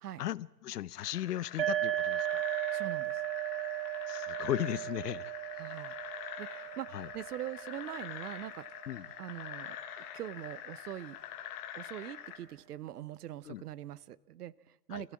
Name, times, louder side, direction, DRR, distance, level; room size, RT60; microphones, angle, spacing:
voice 1, 0.2-2.4 4.1-5.3 6.9-7.1 8.9-9.1 13.5-13.6 14.9-15.0, left 12 dB, 70° left, 20 dB, 0.8 m, -36 dB
sound 1, 1.0-12.4, left 10 dB, 15° left, 0.9 m, -45 dB
sound 2, 1.6-9.1, right 14 dB, 35° right, 0.7 m, -36 dB
voice 2, 2.7-3.2 5.6-6.0 6.4-8.7 9.2-11.2 11.7-15.1, right 12 dB, 65° right, 21 dB, 0.8 m, -43 dB
25.0 x 15.5 x 8.7 m, 1.1 s
hypercardioid pair, 175°, 49 cm